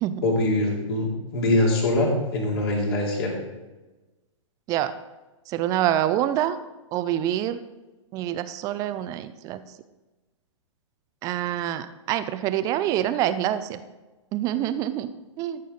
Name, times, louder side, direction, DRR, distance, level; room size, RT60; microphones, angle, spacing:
voice 1, 0.2-3.3, left 2 dB, 50° left, -2 dB, 3.1 m, -23 dB
voice 2, 5.5-6.6 6.9-7.6 8.1-9.6 11.2-13.8 14.3-15.1 15.4-15.6, right 12 dB, 20° right, 12 dB, 0.4 m, -26 dB
14.0 x 6.5 x 4.0 m, 1.1 s
figure-of-eight pair, 110°, 17 cm